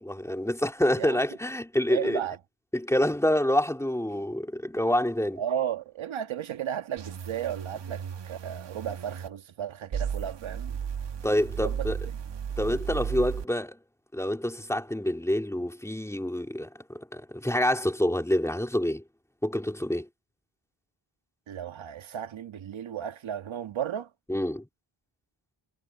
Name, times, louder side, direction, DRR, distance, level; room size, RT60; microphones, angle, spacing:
voice 1, 0.0-2.2 2.7-5.4 11.2-12.0 12.6-13.8 14.1-19.0 19.4-20.1 24.3-24.7, left 1 dB, 5° left, 3.5 m, -27 dB
voice 2, 1.9-2.4 5.4-10.8 11.6-11.9 21.5-24.1, right 9 dB, 75° right, 1.7 m, -34 dB
sound 1, 7.0-9.3 9.9-13.4, right 7 dB, 60° right, 1.9 m, -34 dB
wide cardioid pair, 120°, 47 cm